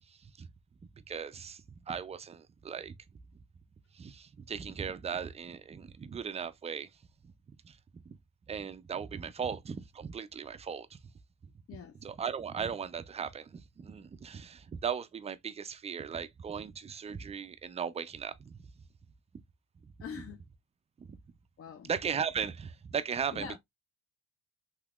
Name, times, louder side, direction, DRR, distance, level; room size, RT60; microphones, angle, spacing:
voice 1, 0.1-0.5 1.1-3.0 3.9-6.9 7.2-7.3 7.6-7.8 8.1-8.2 8.5-11.0 12.0-18.6 21.0-21.1 21.8-23.6, right 7 dB, 20° right, 0.3 m, -37 dB
voice 2, 11.7-12.0 20.0-20.4 21.6-21.9 23.3-23.6, left 6 dB, 40° left, 0.5 m, -43 dB
3.4 x 2.9 x 2.3 m
supercardioid pair, 80°, 37 cm